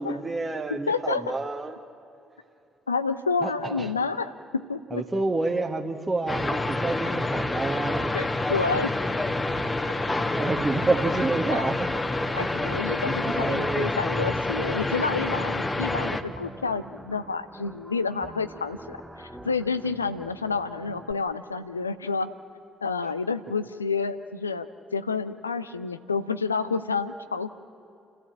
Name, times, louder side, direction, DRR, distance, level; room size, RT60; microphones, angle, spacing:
voice 1, 0.0-1.7 3.4-3.9 4.9-8.1 10.1-11.9 12.6-12.8 13.2-14.0, right 2 dB, 20° right, 1 dB, 1.4 m, -29 dB
voice 2, 0.7-1.3 2.9-5.0 8.1-9.0 11.5-11.7 12.3-22.3 22.8-24.7 24.9-27.5, left 4 dB, 85° left, 12 dB, 0.6 m, -29 dB
sound 1, 6.3-16.2, left 2 dB, 20° left, 1.3 m, -28 dB
sound 2, 9.9-21.1, right 1 dB, 5° right, 1.6 m, -45 dB
29.5 x 14.0 x 8.8 m, 2.7 s
figure-of-eight pair, 45°, 0 cm